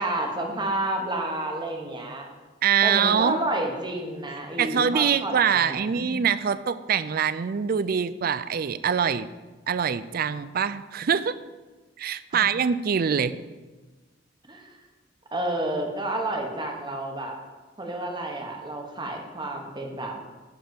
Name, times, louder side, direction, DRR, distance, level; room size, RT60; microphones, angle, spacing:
voice 1, 0.0-2.3 2.8-6.1 12.3-12.4 14.5-14.7 15.3-17.4 17.8-20.2, right 1 dB, 25° right, 2 dB, 1.4 m, -30 dB
voice 2, 2.6-3.4 4.6-9.3 9.7-11.3 12.0-13.4, right 7 dB, 55° right, 15 dB, 0.4 m, -24 dB
10.5 x 4.3 x 7.7 m, 1.2 s
head